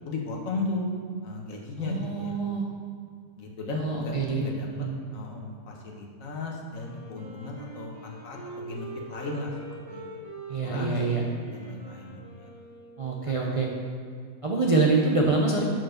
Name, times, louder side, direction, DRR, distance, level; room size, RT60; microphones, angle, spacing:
voice 1, 0.1-0.9 1.2-2.4 3.4-4.7 5.1-9.5 9.9-10.0 10.6-12.5 13.3-13.4, left 3 dB, 70° left, -1 dB, 1.5 m, -35 dB
voice 2, 1.8-2.6 3.7-4.9 10.5-11.2 13.0-13.7 14.4-15.6, right 3 dB, 45° right, -2 dB, 0.4 m, -26 dB
Wind instrument woodwind instrument, 6.7-13.4, right 2 dB, 30° right, 1.4 m, -43 dB
6.0 x 4.7 x 6.3 m, 2.2 s
omnidirectional pair, 1.5 m